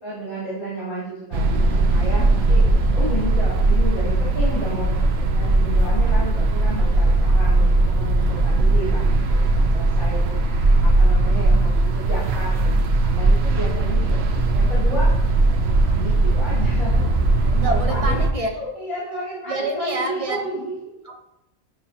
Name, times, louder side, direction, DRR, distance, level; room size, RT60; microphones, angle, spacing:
voice 1, 0.0-12.8 13.0-15.2 15.6-18.2 18.5-20.9, right 1 dB, 60° left, -11 dB, 3.7 m, -32 dB
sound 1, 1.3-18.3, right 2 dB, 60° right, 0.9 m, -18 dB
voice 2, 17.5-18.5 19.5-20.5 21.0-21.2, right 1 dB, 30° right, 1 dB, 1.0 m, -28 dB
10.5 x 5.5 x 2.9 m, 0.88 s
omnidirectional pair, 1.3 m